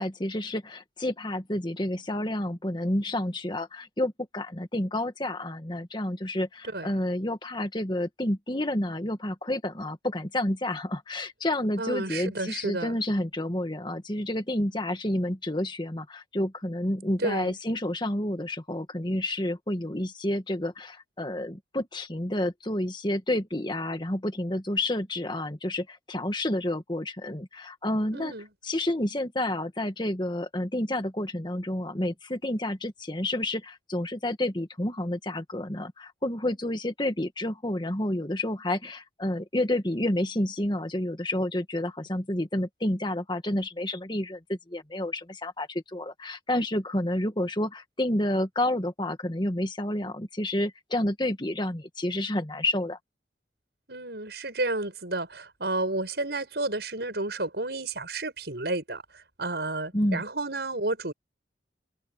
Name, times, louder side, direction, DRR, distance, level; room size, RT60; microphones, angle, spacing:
voice 1, 0.0-28.3 28.6-53.0 59.9-60.2, left 1 dB, 25° left, 1.8 m, -29 dB
voice 2, 11.8-13.0 17.2-17.5 28.1-28.5 53.9-61.1, right 2 dB, 70° right, 6.2 m, -31 dB
open air
head